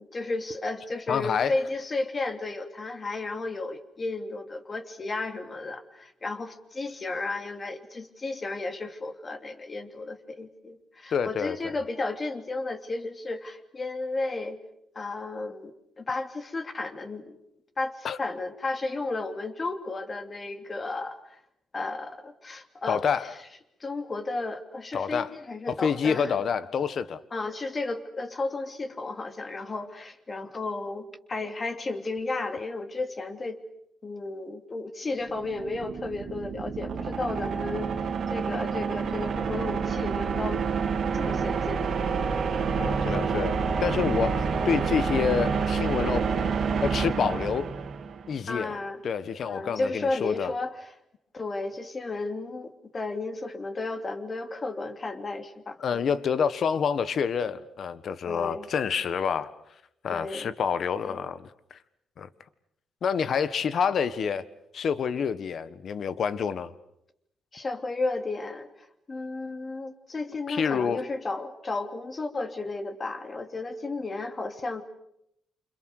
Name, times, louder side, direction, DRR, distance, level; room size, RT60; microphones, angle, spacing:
voice 1, 0.0-14.6 14.9-17.4 17.8-21.4 21.7-23.0 23.8-26.3 27.3-33.6 34.0-37.9 38.3-40.6 41.1-41.9 42.5-42.7 48.5-49.0 49.4-50.9 51.3-56.0 58.2-58.7 60.1-60.5 60.9-61.2 67.5-74.8, left 3 dB, 30° left, 2.8 m, -33 dB
voice 2, 1.1-1.5 11.1-11.6 18.0-18.2 22.9-23.3 24.9-25.3 25.7-27.2 42.8-46.2 46.8-47.7 48.3-48.8 49.0-50.5 55.8-59.5 60.0-61.8 62.2-62.3 63.0-64.4 64.7-66.7 70.5-71.0, left 6 dB, 55° left, 1.5 m, -28 dB
sound 1, 35.2-48.3, right 5 dB, 55° right, 2.6 m, -28 dB
28.5 x 27.0 x 6.7 m
cardioid pair, 110°, 0 cm